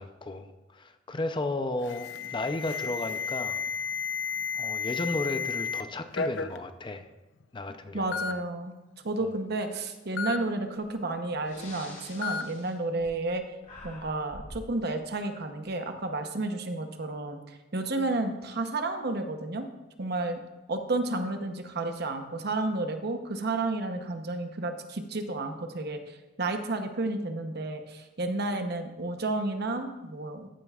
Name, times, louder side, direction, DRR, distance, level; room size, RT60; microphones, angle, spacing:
voice 1, 0.0-3.6 4.5-7.1 7.5-8.3, left 2 dB, 25° left, 8 dB, 0.5 m, -34 dB
Alarm, 1.8-5.8 6.1-6.6 7.4-7.5 8.1-8.3 10.2-10.4 12.2-12.4, left 6 dB, 75° left, 0.5 m, -32 dB
voice 2, 7.9-8.7 9.0-13.4 13.8-17.4 17.7-19.7 20.0-20.4 20.7-30.5, right 2 dB, 60° right, 6 dB, 0.9 m, -31 dB
Breathing, 10.8-10.9 11.4-13.4 13.6-14.7, left 2 dB, 45° left, 2.6 m, -46 dB
14.0 x 8.8 x 2.4 m, 1.1 s
head